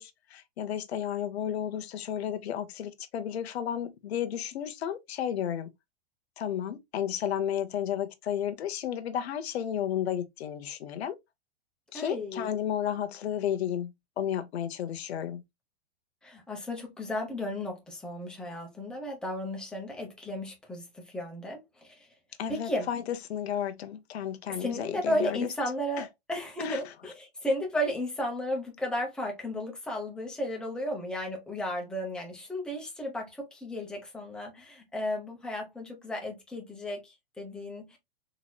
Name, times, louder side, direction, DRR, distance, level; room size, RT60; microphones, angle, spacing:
voice 1, 0.0-5.7 6.4-11.1 11.9-15.4 22.4-25.5 26.0-26.1 26.6-26.8, left 9 dB, 85° left, 0.8 m, -33 dB
voice 2, 11.9-12.5 16.2-22.1 22.5-22.9 24.5-38.0, left 1 dB, 5° left, 0.9 m, -34 dB
4.1 x 3.0 x 2.3 m
supercardioid pair, 150°, 31 cm